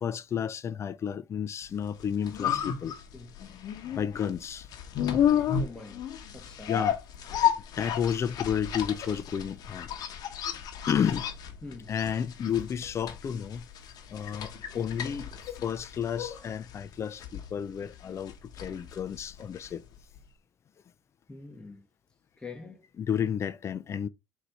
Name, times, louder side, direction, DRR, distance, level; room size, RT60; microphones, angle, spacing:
voice 1, 0.0-2.9 3.9-4.7 6.7-7.0 7.8-9.9 10.9-11.3 11.9-13.6 14.1-19.8 23.0-24.1, left 8 dB, 40° left, 0.4 m, -31 dB
sound 1, 1.9-19.9 20.2-20.3, left 9 dB, 60° left, 0.9 m, -32 dB
voice 2, 5.6-6.0 6.3-6.9 11.6-11.9 21.3-21.8 22.4-22.8, left 3 dB, 10° left, 0.9 m, -44 dB
4.0 x 2.8 x 4.6 m
supercardioid pair, 85°, 7 cm